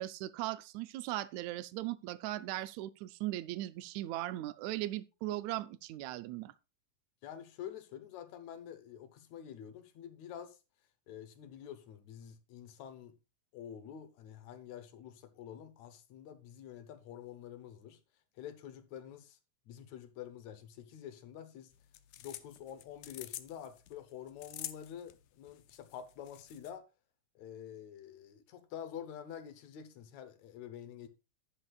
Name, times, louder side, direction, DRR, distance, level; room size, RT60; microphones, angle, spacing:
voice 1, 0.0-6.5, right 15 dB, 75° right, 1.8 m, -38 dB
voice 2, 7.2-10.6 11.1-13.1 13.5-18.0 18.4-19.4 19.7-21.7 22.2-26.9 27.4-31.1, left 9 dB, 70° left, 2.0 m, -48 dB
sound 1, 21.7-26.7, left 13 dB, 90° left, 1.4 m, -48 dB
11.5 x 9.9 x 2.4 m
omnidirectional pair, 3.6 m